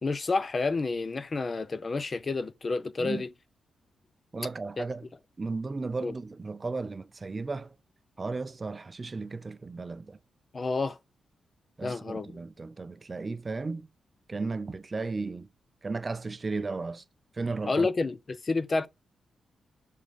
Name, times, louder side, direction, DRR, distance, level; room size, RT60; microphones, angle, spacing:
voice 1, 0.0-3.3 4.8-4.9 6.0-6.1 10.5-11.0 11.8-12.4 17.7-18.9, left 3 dB, 30° left, 0.5 m, -29 dB
voice 2, 4.3-5.1 5.4-7.7 8.2-10.2 11.8-13.9 14.3-15.5 15.8-17.0 17.4-17.9, right 3 dB, 25° right, 0.5 m, -35 dB
7.0 x 3.7 x 4.0 m
wide cardioid pair, 140°, 0 cm